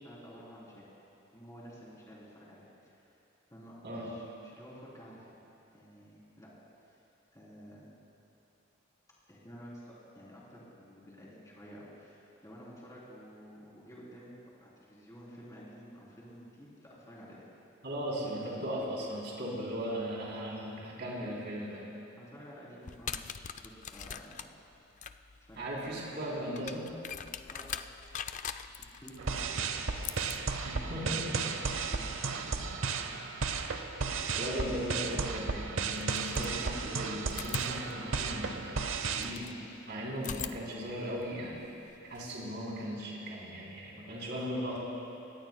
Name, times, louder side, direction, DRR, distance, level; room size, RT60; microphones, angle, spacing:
voice 1, 0.0-0.9 1.3-3.2 3.5-5.3 5.7-6.5 6.8-7.0 7.3-7.9 9.3-14.4 14.6-17.4 22.2-23.2 23.5-24.4 25.5-26.7 27.5-27.7 28.7-29.6 29.8-30.9 31.2-33.1, equal, 15° left, -6 dB, 3.3 m, -52 dB
voice 2, 17.8-21.8 25.6-26.8 30.6-31.3 34.3-38.8 39.1-39.5 39.9-41.6 42.1-44.8, equal, 55° right, -5 dB, 3.3 m, -37 dB
sound 1, 22.8-33.6 35.1-35.2 35.9-36.9 37.3-39.6 40.2-42.2, left 8 dB, 40° left, 0.4 m, -44 dB
sound 2, 29.2-39.3, right 4 dB, 80° right, 0.7 m, -34 dB
23.5 x 18.5 x 2.2 m, 2.9 s
head